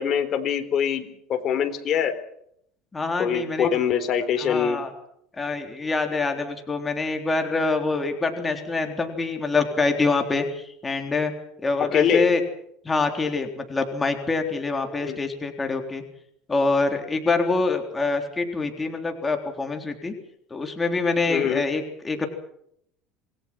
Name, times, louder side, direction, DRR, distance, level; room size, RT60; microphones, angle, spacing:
voice 1, 0.0-2.1 3.2-4.8 11.9-12.3 15.0-15.2 21.3-21.6, left 8 dB, 40° left, 8 dB, 4.0 m, -24 dB
voice 2, 2.9-3.7 4.4-4.9 5.4-11.3 11.6-12.4 12.8-16.0 16.5-20.1 20.5-22.3, left 3 dB, 15° left, 4 dB, 3.7 m, -25 dB
27.5 x 20.5 x 6.1 m, 0.71 s
supercardioid pair, 125°, 0 cm